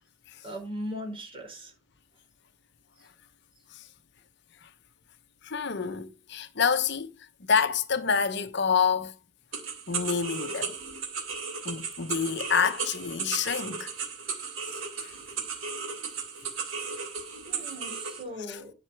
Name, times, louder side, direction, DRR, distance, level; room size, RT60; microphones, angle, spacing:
voice 1, 0.4-1.7 17.5-18.7, equal, 25° right, 5.0 m, -38 dB
voice 2, 5.4-9.1 9.9-10.8 11.6-13.9 15.0-15.1 18.5-18.6, left 6 dB, 55° left, 0.9 m, -28 dB
sound 1, 9.5-18.2, right 5 dB, 75° right, 3.0 m, -35 dB
10.5 x 6.0 x 4.6 m
head